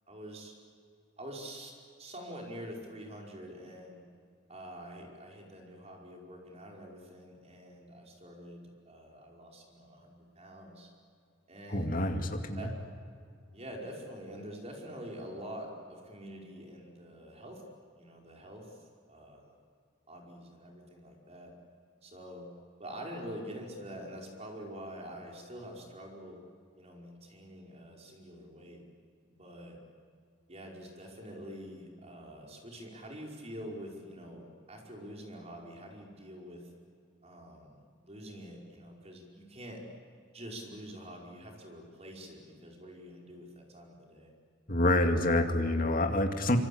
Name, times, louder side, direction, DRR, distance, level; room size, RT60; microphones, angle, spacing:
voice 1, 0.1-0.5 1.2-1.7 2.0-4.0 4.5-10.9 11.5-12.0 12.5-12.8 13.5-17.6 18.0-18.8 19.1-19.5 20.1-21.5 22.0-22.5 22.8-26.4 26.8-28.8 29.3-29.8 30.5-36.7 37.2-39.9 40.3-44.3, equal, 35° right, 0 dB, 5.0 m, -46 dB
voice 2, 11.7-12.7 44.7-46.6, left 1 dB, 45° left, 5 dB, 2.3 m, -27 dB
26.0 x 25.0 x 8.6 m, 2.4 s
head